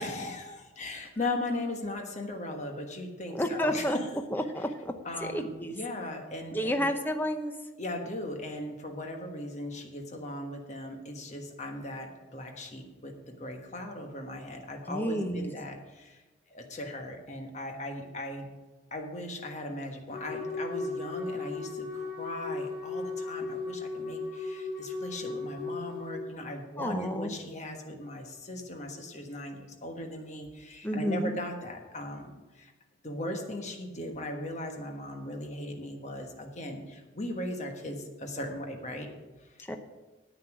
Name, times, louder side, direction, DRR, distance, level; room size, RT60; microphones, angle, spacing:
voice 1, 0.0-4.2 5.0-6.9 7.8-16.2 16.5-18.5 18.9-32.7 33.0-39.1 39.4-39.6, left 1 dB, 35° left, 3 dB, 1.4 m, -38 dB
voice 2, 3.3-4.0 4.3-4.9 5.2-5.7 6.5-7.5 14.9-15.5 26.8-27.3 30.8-31.3 39.7-39.8, equal, 10° left, 6 dB, 0.8 m, -30 dB
Wind instrument woodwind instrument, 20.1-26.2, left 3 dB, 55° left, 1.5 m, -36 dB
9.9 x 8.7 x 6.1 m, 1.2 s
head